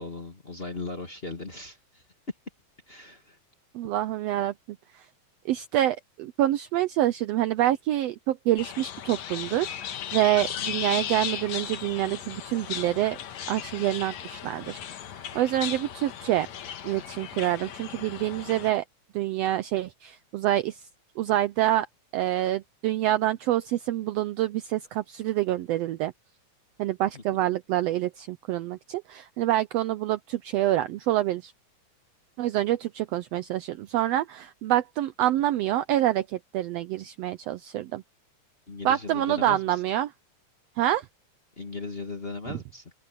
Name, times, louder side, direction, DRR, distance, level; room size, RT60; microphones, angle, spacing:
voice 1, 0.0-2.0 2.9-3.4 10.6-10.8 27.1-27.2 38.7-39.8 41.6-42.9, left 3 dB, 25° left, 1.5 m, -38 dB
voice 2, 3.7-5.0 5.4-13.2 13.5-14.8 15.3-16.5 16.8-18.8 19.1-20.8 21.2-21.9 22.1-26.1 26.8-31.5 32.4-38.0 38.8-40.1 40.8-41.1 42.5-42.6, right 13 dB, 85° right, 1.4 m, -26 dB
sound 1, 8.6-18.7, left 9 dB, 65° left, 2.5 m, -36 dB
open air
omnidirectional pair, 3.5 m